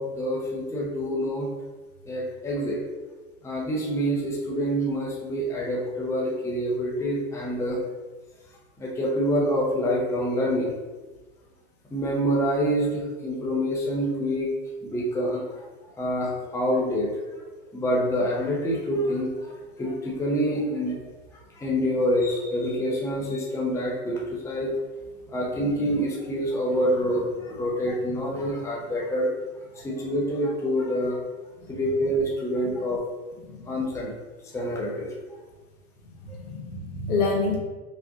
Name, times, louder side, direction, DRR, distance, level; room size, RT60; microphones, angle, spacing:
voice 1, 0.0-1.5 2.1-2.8 3.4-7.8 8.8-10.7 11.9-14.5 14.8-15.7 16.0-17.1 17.7-21.0 21.5-24.7 25.3-29.3 29.7-31.2 31.7-33.0 33.7-34.1 34.5-35.1, equal, 5° left, -4 dB, 0.7 m, -26 dB
voice 2, 36.2-37.6, left 3 dB, 80° left, -1 dB, 1.4 m, -28 dB
5.0 x 2.6 x 3.6 m, 1.2 s
hypercardioid pair, 120°, 44 cm